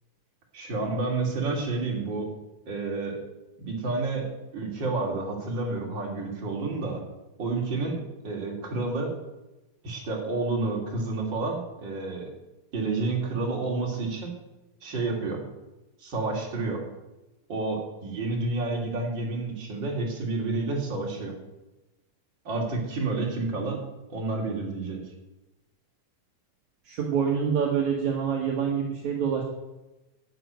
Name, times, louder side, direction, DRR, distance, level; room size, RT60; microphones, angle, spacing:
voice 1, 0.5-2.3 2.7-3.2 3.6-4.3 4.5-7.0 7.4-9.1 9.8-12.3 12.7-14.3 14.8-15.4 16.0-16.8 17.5-21.3 22.4-23.8 24.1-25.0, right 3 dB, 35° right, -1 dB, 3.4 m, -30 dB
voice 2, 26.9-29.4, right 7 dB, 65° right, 0 dB, 2.7 m, -26 dB
11.0 x 8.1 x 9.1 m, 1.0 s
omnidirectional pair, 3.9 m